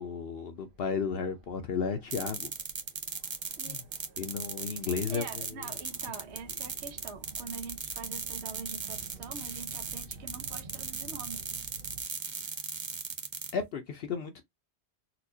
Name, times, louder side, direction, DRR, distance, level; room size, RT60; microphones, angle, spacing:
voice 1, 0.0-2.5 3.6-3.8 4.2-5.6 13.5-14.4, left 6 dB, 65° left, 0.8 m, -34 dB
sound 1, 0.6-12.0, right 3 dB, 55° right, 1.0 m, -52 dB
sound 2, 2.1-13.5, right 5 dB, 35° right, 0.4 m, -38 dB
voice 2, 5.1-11.5, right 5 dB, 80° right, 1.0 m, -44 dB
4.2 x 2.3 x 2.7 m
omnidirectional pair, 1.1 m